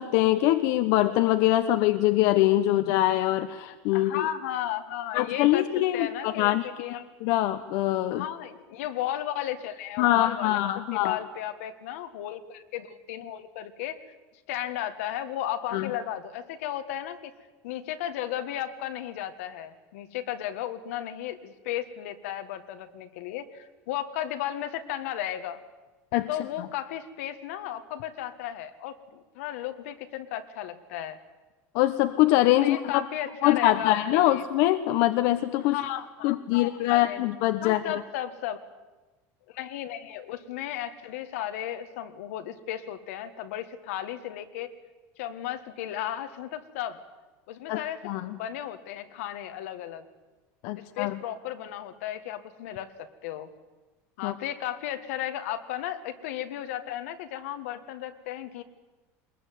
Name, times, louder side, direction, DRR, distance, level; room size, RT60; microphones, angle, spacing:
voice 1, 0.0-4.2 5.1-8.2 10.0-11.2 15.7-15.9 26.1-26.3 31.7-33.0 33.4-35.8 36.2-37.8 47.7-48.4 50.6-51.2 54.2-54.3, left 15 dB, 65° left, 8 dB, 1.0 m, -24 dB
voice 2, 3.9-5.7 5.9-7.0 8.1-14.0 14.5-17.3 17.6-25.6 26.3-31.2 32.6-34.4 35.7-37.2 37.6-38.6 39.5-44.7 45.2-47.0 47.5-50.0 50.8-52.9 53.2-53.5 54.2-58.6, left 11 dB, 90° left, 8 dB, 1.8 m, -34 dB
21.5 x 21.0 x 9.4 m, 1.2 s
cardioid pair, 145°, 7 cm